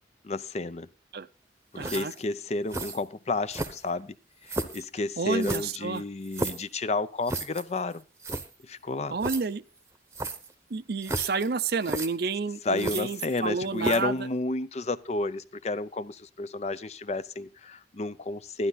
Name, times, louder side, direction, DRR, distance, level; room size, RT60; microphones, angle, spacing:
voice 1, 0.2-0.9 1.7-4.1 4.4-8.0 8.6-9.2 12.6-18.7, left 3 dB, 40° left, 15 dB, 0.5 m, -31 dB
sound 1, 1.8-2.2 2.7-3.0 3.5-4.0 4.5-4.8 5.4-6.7 7.3-7.6 7.9-8.5 9.2-9.4 10.1-10.5 11.0-11.5 11.8-12.1 12.8-13.4 13.8-14.1, right 2 dB, 15° right, 0.9 m, -33 dB
voice 2, 1.8-2.1 5.2-6.0 9.1-9.6 10.7-14.3, right 4 dB, 60° right, 15 dB, 0.6 m, -30 dB
12.0 x 11.0 x 4.0 m, 0.33 s
head